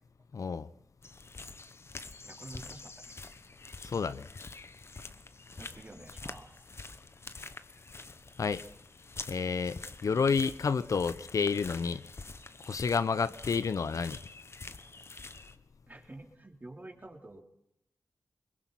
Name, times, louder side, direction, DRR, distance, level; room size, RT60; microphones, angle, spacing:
voice 1, 0.3-0.7 3.8-4.3 8.4-8.6 9.3-12.0 12.7-14.2, left 5 dB, 70° left, 0.7 m, -30 dB
sound 1, 1.0-15.6, left 3 dB, 50° left, 1.1 m, -47 dB
voice 2, 2.2-3.1 5.5-6.6 15.3-15.5 15.9-17.4, right 2 dB, 30° right, 3.8 m, -49 dB
22.0 x 21.0 x 5.8 m
cardioid pair, 45°, 6 cm